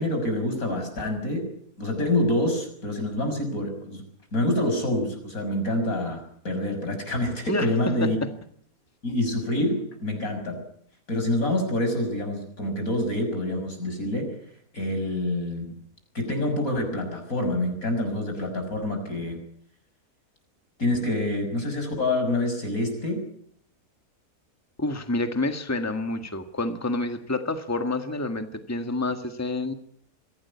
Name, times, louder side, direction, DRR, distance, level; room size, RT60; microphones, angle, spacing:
voice 1, 0.0-1.5 1.8-4.0 4.3-8.2 9.0-10.6 11.1-14.3 14.7-15.8 16.1-19.4 20.8-23.2, left 1 dB, 65° left, 5 dB, 6.8 m, -27 dB
voice 2, 24.8-29.7, left 2 dB, 10° left, 7 dB, 1.7 m, -28 dB
24.0 x 17.0 x 8.4 m, 0.64 s
omnidirectional pair, 1.6 m